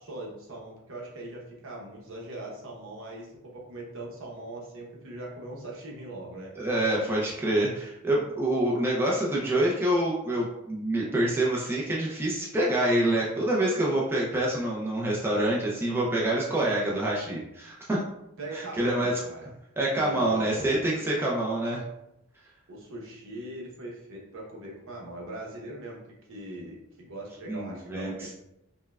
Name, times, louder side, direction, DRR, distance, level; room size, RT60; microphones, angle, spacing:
voice 1, 0.0-6.5 18.4-19.5 19.9-20.8 22.7-26.0 26.3-28.3, right 1 dB, 60° right, -2 dB, 0.9 m, -41 dB
voice 2, 6.6-18.0 18.5-19.2 19.8-21.8 27.5-28.1, right 1 dB, 10° right, -5 dB, 0.5 m, -26 dB
5.3 x 2.2 x 2.3 m, 0.86 s
head